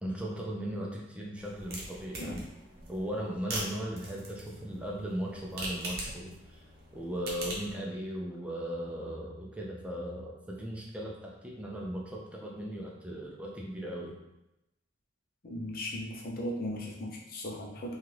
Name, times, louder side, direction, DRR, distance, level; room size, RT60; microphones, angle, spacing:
voice 1, 0.0-2.4 2.9-6.6 6.9-14.2, equal, 5° right, -3 dB, 0.4 m, -37 dB
sound 1, 1.3-7.8, right 1 dB, 50° right, 0.7 m, -42 dB
voice 2, 15.4-17.9, left 1 dB, 50° left, -3 dB, 0.6 m, -37 dB
2.7 x 2.4 x 3.2 m, 0.90 s
head